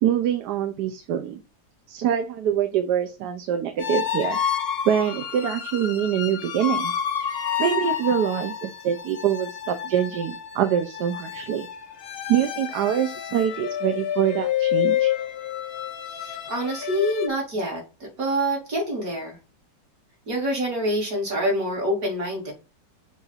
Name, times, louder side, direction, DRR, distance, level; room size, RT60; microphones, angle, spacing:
voice 1, 0.0-1.4 1.9-6.9 7.6-11.7 12.3-15.1, right 9 dB, 70° right, 7 dB, 1.2 m, -25 dB
sound 1, 3.8-17.3, left 10 dB, 55° left, 0.6 m, -29 dB
voice 2, 16.1-19.4 20.3-22.5, equal, 55° right, -1 dB, 2.9 m, -26 dB
6.8 x 2.6 x 5.6 m, 0.31 s
omnidirectional pair, 1.9 m